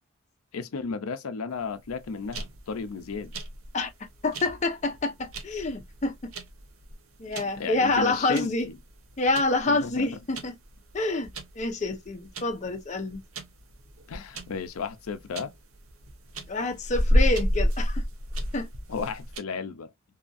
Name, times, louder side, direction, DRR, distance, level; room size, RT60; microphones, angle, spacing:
voice 1, 0.5-3.3 7.4-8.8 9.7-10.1 14.1-15.5 18.9-19.9, left 5 dB, 80° left, 0.5 m, -34 dB
sound 1, 1.8-19.4, equal, 75° right, 0.7 m, -31 dB
voice 2, 4.2-6.3 7.2-8.7 9.2-10.5 10.9-11.3 11.6-13.2 16.5-18.0 18.5-18.7, left 2 dB, 35° left, 0.5 m, -27 dB
2.7 x 2.5 x 2.4 m
head